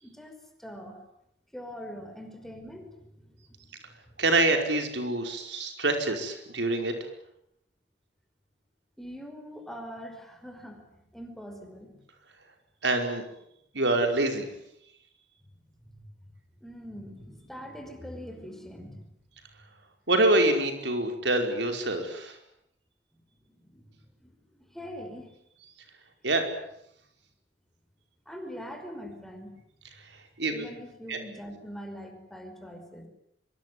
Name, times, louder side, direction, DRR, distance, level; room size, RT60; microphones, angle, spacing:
voice 1, 0.0-1.0 1.5-4.0 9.0-12.0 15.6-16.1 16.6-19.1 23.1-23.2 23.5-25.3 28.3-29.5 30.5-33.1, equal, ahead, 5 dB, 5.3 m, -43 dB
voice 2, 4.2-6.9 12.8-13.2 13.7-14.4 20.1-22.4 26.2-26.5 30.4-30.7 31.1-31.2, right 2 dB, 90° right, 5 dB, 5.2 m, -25 dB
25.0 x 24.0 x 9.6 m, 0.77 s
head